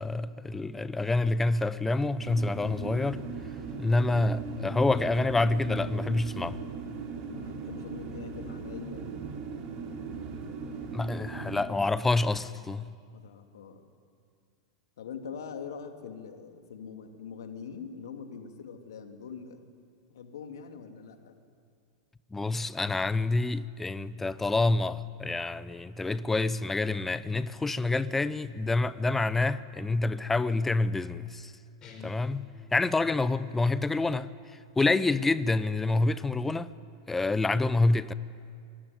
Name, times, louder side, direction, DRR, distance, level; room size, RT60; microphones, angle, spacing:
voice 1, 0.0-3.2 3.8-6.6 10.9-12.9 22.3-31.5 32.0-34.3 34.8-36.7 37.1-38.1, left 2 dB, 10° left, 0.9 m, -27 dB
sound 1, 2.2-11.6, right 5 dB, 40° right, 4.4 m, -39 dB
voice 2, 7.3-9.1 13.1-13.8 15.0-19.6 20.1-21.4, left 6 dB, 70° left, 2.7 m, -43 dB
sound 2, 31.8-33.2, left 2 dB, 30° left, 5.6 m, -47 dB
26.0 x 19.5 x 9.7 m
figure-of-eight pair, 95°, 2 cm